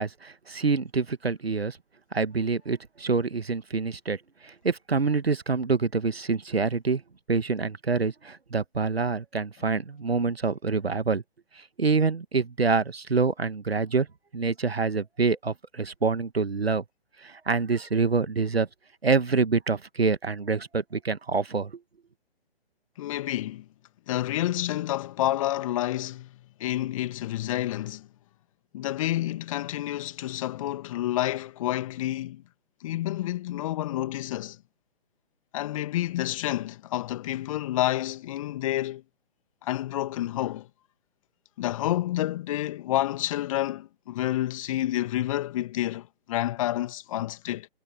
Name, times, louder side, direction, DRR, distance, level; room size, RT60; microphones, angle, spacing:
voice 1, 0.0-1.8 2.1-4.2 4.4-7.0 7.3-11.2 11.8-14.1 14.3-16.8 17.2-18.7 19.0-21.7, right 4 dB, 75° right, 1.5 m, -26 dB
voice 2, 23.0-23.7 24.1-28.1 28.7-32.4 32.8-34.6 35.5-39.0 39.6-40.7 41.6-47.7, left 14 dB, 30° left, 2.3 m, -29 dB
figure-of-eight pair, 135°, 31 cm